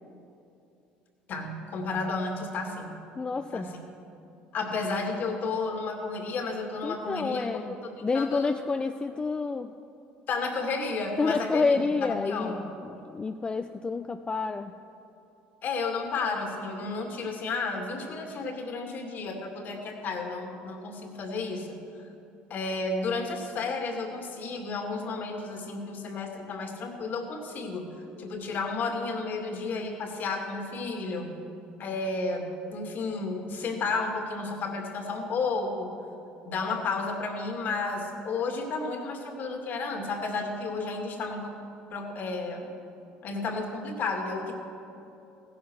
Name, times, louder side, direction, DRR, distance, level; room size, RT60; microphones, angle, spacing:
voice 1, 1.3-3.0 3.5-3.7 4.5-8.5 10.3-12.6 15.6-21.8 22.5-27.9 28.2-31.4 31.8-35.9 36.5-41.5 41.9-42.7 43.2-44.6, left 3 dB, 55° left, 3 dB, 2.3 m, -32 dB
voice 2, 3.2-3.7 6.8-7.8 8.0-9.7 11.2-14.7, left 4 dB, 25° left, 8 dB, 0.5 m, -29 dB
16.0 x 10.0 x 6.3 m, 2.7 s
supercardioid pair, 85°, 4 cm